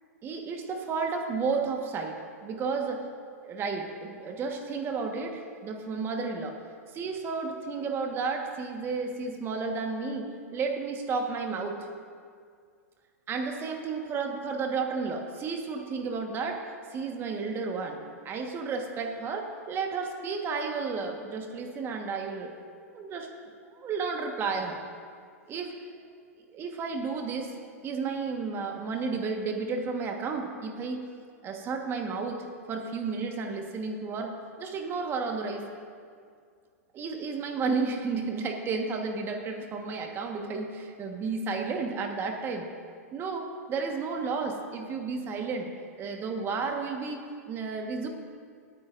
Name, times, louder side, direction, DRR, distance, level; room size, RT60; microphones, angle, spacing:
voice 1, 0.2-2.2 2.4-3.0 3.4-6.5 6.9-11.9 13.3-16.6 16.9-18.0 18.2-22.5 22.9-23.3 23.8-24.8 25.5-25.7 26.5-27.5 27.8-31.0 31.4-35.6 36.9-42.7 43.1-45.7 46.0-47.2 47.5-48.1, right 4 dB, 25° right, 3 dB, 1.4 m, -32 dB
26.0 x 9.0 x 2.6 m, 2.1 s
hypercardioid pair, 120°, 8 cm